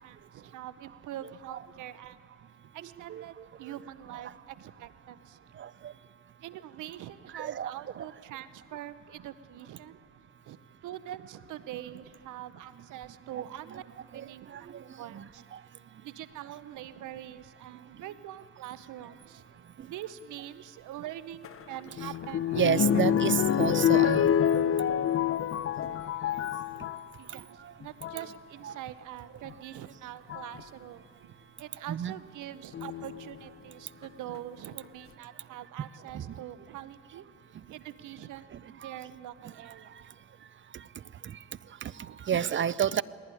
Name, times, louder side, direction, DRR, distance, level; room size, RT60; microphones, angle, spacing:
voice 1, 0.0-2.2 2.7-5.5 6.4-10.0 10.5-10.6 10.8-13.8 14.1-14.7 15.0-15.4 16.0-19.4 19.9-23.0 26.4-26.5 27.2-37.2 37.7-39.9 42.1-42.2, right 12 dB, 85° right, 15 dB, 0.8 m, -44 dB
voice 2, 2.8-3.2 4.1-4.2 5.6-5.9 7.3-8.1 13.3-13.4 13.7-13.8 14.1-14.8 15.1-15.6 22.0-22.1 22.5-24.3 25.9-26.0 27.6-27.7 28.2-28.3 28.6-28.7 31.9-32.1 36.1-36.4 38.5-38.9 41.2-41.4 41.8-41.9 42.2-43.0, right 8 dB, 40° right, 20 dB, 0.5 m, -31 dB
sound 1, 21.4-27.1 27.8-28.3 29.5-29.6 30.3-30.6 32.7-33.4 34.0-34.1 34.4-34.5, left 9 dB, 45° left, 0.7 m, -27 dB
19.5 x 18.0 x 9.8 m, 2.4 s
cardioid pair, 90°, 30 cm